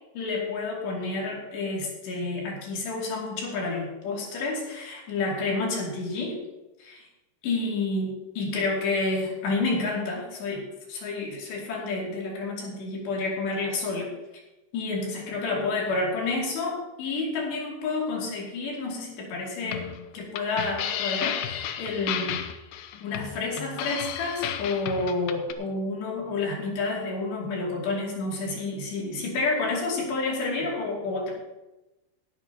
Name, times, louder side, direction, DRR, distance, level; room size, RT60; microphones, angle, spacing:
voice 1, 0.1-6.4 6.8-7.1 7.4-8.1 8.4-10.6 10.9-14.1 14.7-19.9 20.1-22.4 23.0-31.3, left 3 dB, 65° left, -2 dB, 4.6 m, -29 dB
sound 1, 19.6-25.5, left 10 dB, 85° left, 2.2 m, -33 dB
19.0 x 11.0 x 2.9 m, 1.0 s
omnidirectional pair, 5.5 m